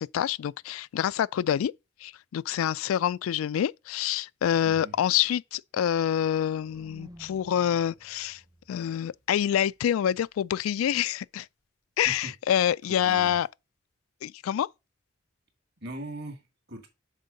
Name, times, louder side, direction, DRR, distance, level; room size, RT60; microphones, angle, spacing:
voice 1, 0.0-1.7 2.0-8.4 8.7-11.5 12.0-13.5 14.2-14.7, left 10 dB, 85° left, 0.3 m, -27 dB
voice 2, 4.6-5.0 12.0-12.3 12.9-13.4 15.8-16.4 16.7-16.9, right 1 dB, 55° right, 2.0 m, -40 dB
sound 1, 5.8-9.9, equal, 15° right, 0.7 m, -54 dB
6.5 x 4.5 x 5.2 m
head